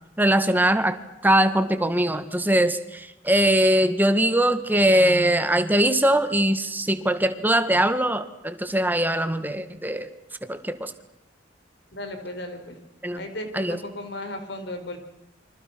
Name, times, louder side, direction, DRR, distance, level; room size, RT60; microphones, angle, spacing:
voice 1, 0.2-10.1 10.4-10.9 13.0-13.2 13.5-13.8, right 1 dB, 10° right, 10 dB, 1.8 m, -21 dB
voice 2, 11.9-12.8 13.2-15.0, left 1 dB, 60° left, 6 dB, 5.2 m, -35 dB
29.0 x 25.5 x 6.2 m, 0.90 s
head